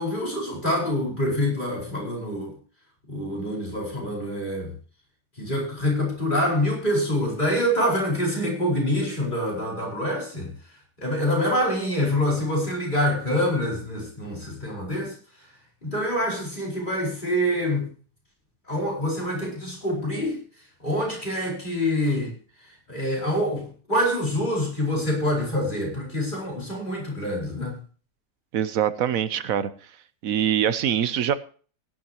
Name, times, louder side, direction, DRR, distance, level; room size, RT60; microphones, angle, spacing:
voice 1, 0.0-2.5 3.1-4.7 5.4-10.5 11.0-15.5 15.8-17.9 18.7-20.4 20.8-22.3 22.6-27.8, equal, 30° left, 4.8 m, -26 dB
voice 2, 28.5-29.7 30.2-31.3, right 9 dB, 65° right, 1.1 m, -23 dB
17.0 x 11.0 x 2.9 m
omnidirectional pair, 1.7 m